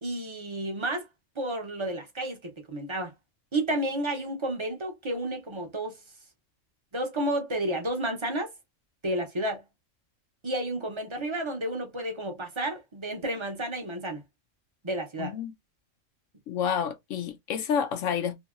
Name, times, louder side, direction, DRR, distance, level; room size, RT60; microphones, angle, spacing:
voice 1, 0.0-1.1 1.4-3.1 3.5-6.0 6.9-8.5 9.0-9.6 10.4-14.2 14.8-15.3, right 1 dB, 30° right, 0.6 m, -31 dB
voice 2, 15.2-15.5 16.5-18.4, left 7 dB, 80° left, 1.0 m, -29 dB
2.7 x 2.7 x 2.4 m
omnidirectional pair, 1.3 m